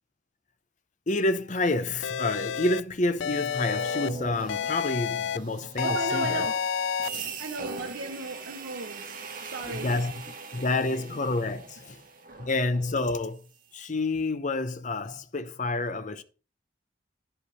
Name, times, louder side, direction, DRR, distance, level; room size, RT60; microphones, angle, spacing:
voice 1, 1.1-6.5 9.6-10.1 10.5-12.0 12.4-13.4 13.7-16.2, left 2 dB, 40° left, 0.7 m, -28 dB
sound 1, 2.0-2.8 3.2-4.1 4.5-5.4 5.8-7.1, left 7 dB, 75° left, 0.4 m, -29 dB
sound 2, 3.3-13.4, right 4 dB, 45° right, 1.5 m, -41 dB
voice 2, 5.8-6.7 7.1-10.0 10.7-10.8 12.3-12.4, right 2 dB, 80° right, 1.1 m, -36 dB
10.0 x 5.6 x 5.3 m
head